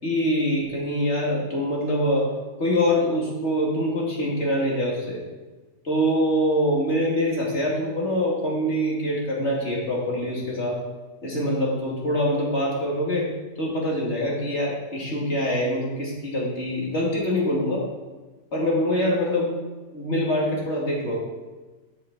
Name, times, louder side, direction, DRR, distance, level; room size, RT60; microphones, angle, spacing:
voice 1, 0.0-2.3 2.6-5.2 5.8-10.8 11.2-13.3 13.6-17.8 18.5-19.5 19.9-21.2, equal, 40° left, -4 dB, 3.0 m, -24 dB
13.0 x 6.6 x 4.4 m, 1.2 s
omnidirectional pair, 1.9 m